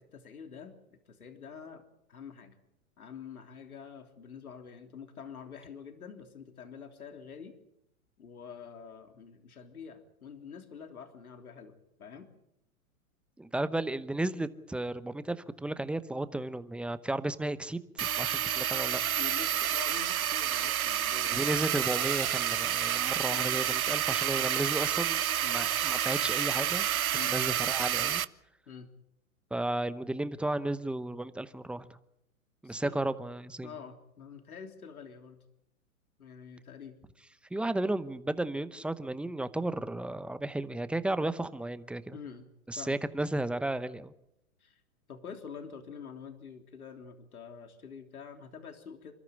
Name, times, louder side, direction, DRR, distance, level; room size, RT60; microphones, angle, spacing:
voice 1, 0.1-0.8 1.1-1.8 2.1-2.6 3.0-7.6 8.2-12.3 19.2-21.4 23.3-23.5 25.4-25.6 27.1-27.4 28.7-28.9 32.6-33.1 33.6-35.4 36.2-37.0 42.1-42.5 42.8-43.0 44.6-44.8 45.1-49.1, left 6 dB, 85° left, 5 dB, 3.5 m, -46 dB
voice 2, 13.4-19.0 21.2-25.2 25.5-26.9 27.3-28.2 29.5-31.8 32.6-33.7 37.5-42.2 42.7-44.1, right 1 dB, 5° right, 13 dB, 0.8 m, -33 dB
sound 1, 18.0-28.2, right 10 dB, 75° right, 1.1 m, -29 dB
29.0 x 13.5 x 8.8 m, 0.81 s
hypercardioid pair, 125°, 42 cm